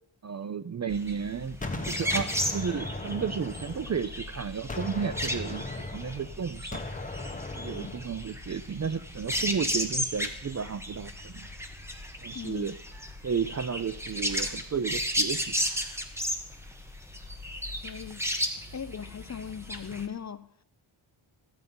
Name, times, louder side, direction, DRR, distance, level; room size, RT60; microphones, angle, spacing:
voice 1, 0.2-1.6 1.9-6.8 7.6-11.5 12.2-12.8 13.2-15.5, right 6 dB, 35° right, 0.4 m, -33 dB
sound 1, 0.9-20.1, equal, 5° right, 1.1 m, -34 dB
Gunshot gunfire, 1.6-4.3 4.7-8.2, left 2 dB, 15° left, 1.2 m, -38 dB
voice 2, 12.3-12.7 17.8-18.2 18.7-20.6, left 7 dB, 35° left, 0.5 m, -39 dB
13.5 x 7.8 x 5.4 m
wide cardioid pair, 115°, 50 cm